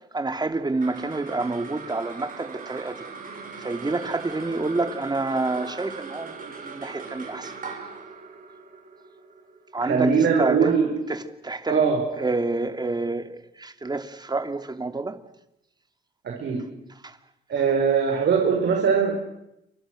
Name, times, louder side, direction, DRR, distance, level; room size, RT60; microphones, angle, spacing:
voice 1, 0.1-3.0 3.6-6.3 6.6-7.5 9.7-10.1 10.4-10.8 11.1-11.9 12.2-13.3 13.6-15.2 17.0-17.1, right 3 dB, 20° right, 2.8 m, -28 dB
sound 1, 0.6-11.2, right 4 dB, 45° right, 6.2 m, -40 dB
voice 2, 9.8-11.1 11.7-12.2 16.2-16.8 17.5-19.2, right 6 dB, 60° right, 5.4 m, -22 dB
28.5 x 25.5 x 6.5 m
cardioid pair, 90°, 20 cm